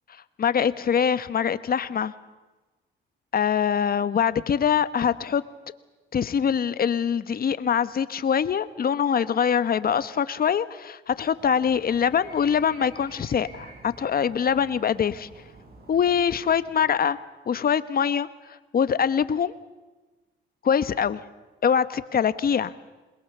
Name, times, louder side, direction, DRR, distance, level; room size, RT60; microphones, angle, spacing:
voice 1, 0.4-2.1 3.3-5.4 6.1-15.3 15.9-17.2 17.5-18.3 18.7-19.5 20.6-21.2 21.6-22.7, left 7 dB, 50° left, 13 dB, 1.2 m, -23 dB
Animal, 11.2-17.1, right 2 dB, 50° right, 5.9 m, -49 dB
27.5 x 21.5 x 6.8 m, 1.2 s
cardioid pair, 90°, 20 cm